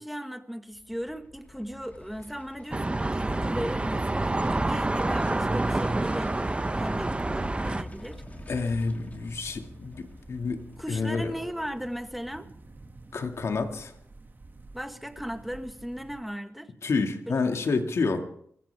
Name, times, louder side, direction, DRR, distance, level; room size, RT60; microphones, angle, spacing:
voice 1, 0.0-8.2 10.8-12.5 14.7-16.7 17.3-17.4, equal, ahead, 7 dB, 1.8 m, -37 dB
sound 1, 0.7-13.9 14.2-14.3, left 1 dB, 30° left, 3.0 m, -46 dB
sound 2, 2.7-7.8, right 2 dB, 20° right, 0.8 m, -28 dB
sound 3, 3.2-16.2, right 3 dB, 40° right, 2.2 m, -47 dB
voice 2, 8.5-11.3 13.1-13.9 16.8-18.2, left 4 dB, 70° left, 5 dB, 2.2 m, -29 dB
25.0 x 15.0 x 3.5 m, 0.65 s
cardioid pair, 50°, 5 cm